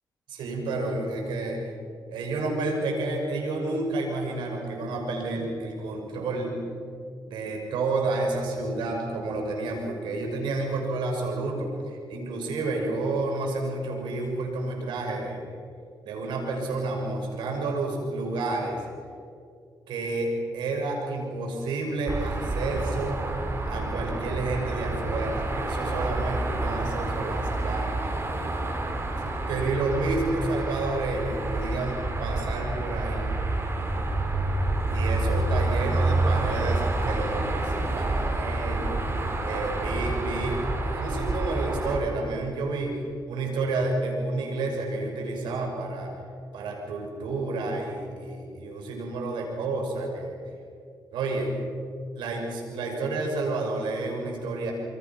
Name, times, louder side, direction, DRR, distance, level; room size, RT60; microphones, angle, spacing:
voice 1, 0.3-1.6 2.1-6.6 7.3-15.4 16.0-18.8 19.9-23.2 23.7-28.1 29.5-33.3 34.9-46.1 46.5-50.3 51.1-51.5 52.1-54.7, right 2 dB, 85° right, 2 dB, 6.1 m, -30 dB
sound 1, 22.1-42.0, right 2 dB, 35° right, 4.9 m, -28 dB
27.5 x 24.5 x 6.0 m, 2.3 s
cardioid pair, 70°, 8 cm